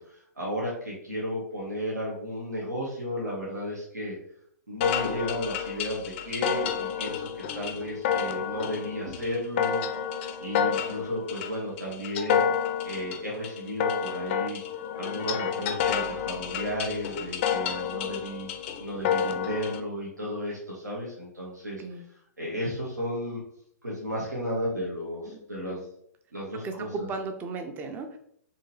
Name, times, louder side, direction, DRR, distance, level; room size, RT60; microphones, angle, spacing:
voice 1, 0.0-4.1 4.7-7.3 7.5-10.0 10.4-12.4 12.8-14.6 15.0-18.5 18.8-21.8 22.4-23.4 23.8-25.8 26.3-27.1, equal, 85° right, -4 dB, 1.0 m, -33 dB
sound 1, 4.8-19.8, left 8 dB, 40° left, 0.4 m, -30 dB
voice 2, 26.6-28.2, right 3 dB, 20° right, 6 dB, 0.4 m, -35 dB
3.6 x 2.7 x 2.7 m, 0.68 s
figure-of-eight pair, 115°, 9 cm